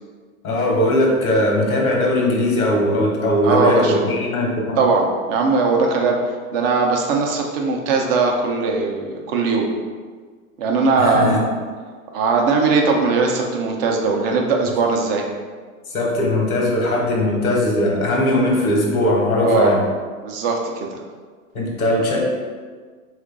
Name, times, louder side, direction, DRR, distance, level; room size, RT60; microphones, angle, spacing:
voice 1, 0.4-4.8 11.0-11.4 15.9-19.8 21.5-22.2, left 1 dB, 85° left, -1 dB, 1.1 m, -19 dB
voice 2, 3.4-4.0 4.8-6.2 6.5-9.7 10.6-11.5 12.1-15.2 19.4-19.8 20.2-21.0, right 4 dB, 45° right, 1 dB, 0.6 m, -19 dB
2.9 x 2.5 x 3.7 m, 1.5 s
hypercardioid pair, 105°, 43 cm